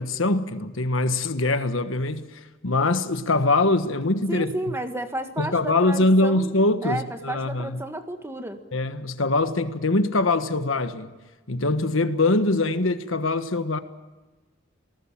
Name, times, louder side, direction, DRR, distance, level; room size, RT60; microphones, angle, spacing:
voice 1, 0.0-4.5 5.4-7.8 8.7-11.1 11.5-13.8, left 2 dB, 75° left, 1.4 m, -23 dB
voice 2, 4.3-6.5 6.8-8.6, right 1 dB, 10° right, 1.7 m, -32 dB
28.5 x 19.0 x 7.5 m
head